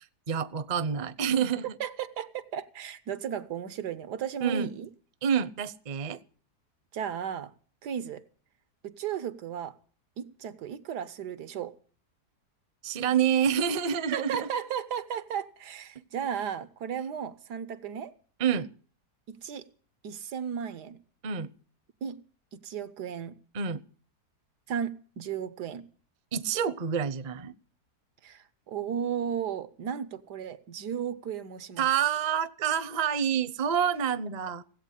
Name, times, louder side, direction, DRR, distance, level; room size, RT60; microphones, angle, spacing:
voice 1, 0.3-1.6 4.4-4.7 5.2-6.2 12.8-14.5 18.4-18.7 21.2-21.5 23.5-23.8 26.3-27.5 31.8-34.6, right 8 dB, 40° right, 0.6 m, -27 dB
voice 2, 1.8-4.9 6.9-7.5 7.8-8.2 8.8-9.7 10.2-11.7 14.1-18.1 19.3-19.7 20.0-21.0 22.0-22.2 22.6-23.4 24.7-25.9 28.2-31.9, right 8 dB, 85° right, 1.6 m, -35 dB
17.0 x 8.3 x 10.0 m
omnidirectional pair, 1.7 m